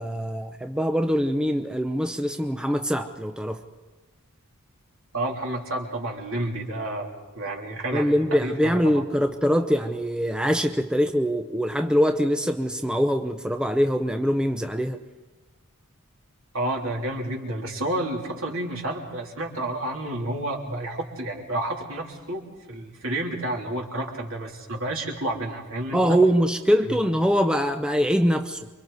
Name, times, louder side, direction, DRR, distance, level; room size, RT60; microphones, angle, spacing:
voice 1, 0.0-3.6 7.9-15.0 25.9-28.7, equal, 5° right, 6 dB, 0.6 m, -23 dB
voice 2, 5.1-7.1 7.3-9.0 16.5-26.2 26.9-27.0, right 1 dB, 65° right, 0 dB, 3.2 m, -30 dB
28.5 x 24.0 x 4.0 m, 1.2 s
head